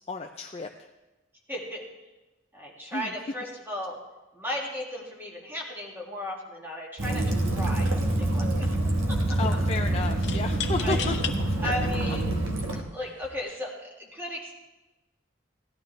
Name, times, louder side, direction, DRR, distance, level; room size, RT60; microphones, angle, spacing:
voice 1, 0.1-0.9 2.9-3.1 9.4-11.2 11.6-11.7, left 3 dB, 30° left, 3 dB, 0.5 m, -32 dB
voice 2, 1.5-1.8 2.5-4.0 4.3-7.2 7.6-8.8 9.1-9.2 10.8-11.0 11.6-12.3 12.7-14.5, equal, 10° right, -2 dB, 2.2 m, -35 dB
Waves surf / Splash splatter / Trickle dribble, 7.0-12.8, right 1 dB, 85° right, 1.3 m, -26 dB
sound 1, 7.3-7.4 7.7-8.3 10.2-11.4 12.1-12.2 13.1-13.4, left 9 dB, 60° left, 0.8 m, -36 dB
16.5 x 11.5 x 3.3 m, 1.1 s
head